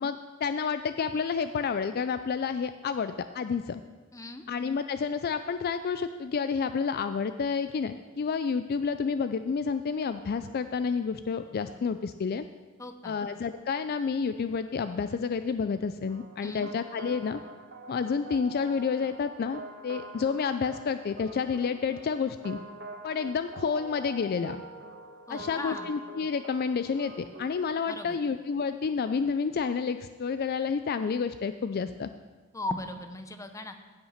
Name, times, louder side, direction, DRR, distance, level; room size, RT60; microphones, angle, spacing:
voice 1, 0.0-3.8 4.5-12.4 13.0-17.4 17.9-22.6 23.0-24.6 25.3-32.1, left 5 dB, 45° left, 10 dB, 0.3 m, -30 dB
voice 2, 4.1-4.5 12.8-13.2 16.4-16.7 25.3-25.9 27.9-28.2 32.5-33.7, left 2 dB, 15° left, 7 dB, 0.8 m, -38 dB
sound 1, 16.1-27.7, right 1 dB, 55° right, 1.2 m, -45 dB
16.0 x 5.8 x 5.7 m, 1.3 s
head